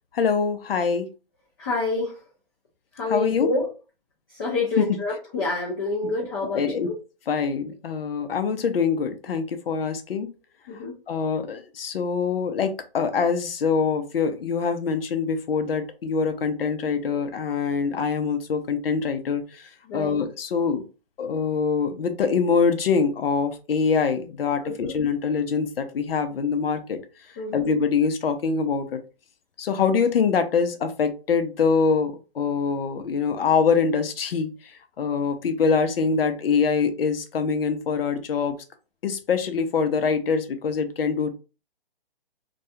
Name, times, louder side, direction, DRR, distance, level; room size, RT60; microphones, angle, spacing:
voice 1, 0.1-1.1 3.1-3.5 4.8-4.9 6.4-6.9 7.3-10.3 11.1-20.8 21.2-27.0 27.5-29.0 29.6-38.6 39.0-41.3, left 5 dB, 70° left, 8 dB, 0.6 m, -24 dB
voice 2, 1.6-2.2 2.9-3.7 4.3-6.7 10.7-10.9 19.9-20.3 24.6-24.9 27.4-27.7, left 3 dB, 25° left, -3 dB, 0.5 m, -27 dB
2.3 x 2.3 x 2.7 m, 0.32 s
hypercardioid pair, 150°, 30 cm